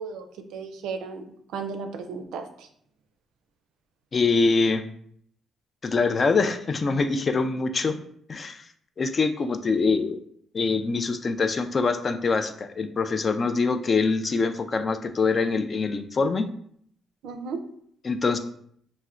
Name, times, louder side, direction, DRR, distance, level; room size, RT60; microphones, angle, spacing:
voice 1, 0.0-2.7 17.2-17.6, right 5 dB, 85° right, 6 dB, 0.4 m, -35 dB
voice 2, 4.1-4.8 5.8-8.0 8.3-8.6 9.0-10.2 10.5-16.5 18.0-18.4, left 4 dB, 40° left, 8 dB, 0.3 m, -24 dB
4.2 x 2.1 x 2.4 m, 0.65 s
cardioid pair, 90°, 0 cm